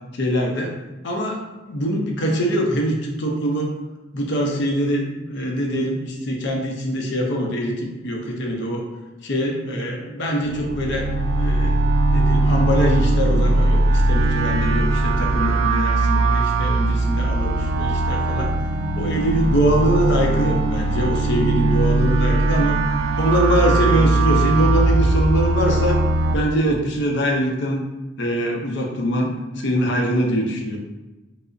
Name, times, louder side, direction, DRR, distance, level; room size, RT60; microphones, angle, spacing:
voice 1, 0.1-0.8 1.0-3.7 4.1-8.8 9.2-18.5 19.0-22.8 23.2-26.0 26.3-27.8 28.2-30.8, equal, 60° left, 0 dB, 0.6 m, -23 dB
sound 1, 10.5-26.3, right 2 dB, 65° right, 0.3 m, -20 dB
4.8 x 2.0 x 2.5 m, 1.1 s
head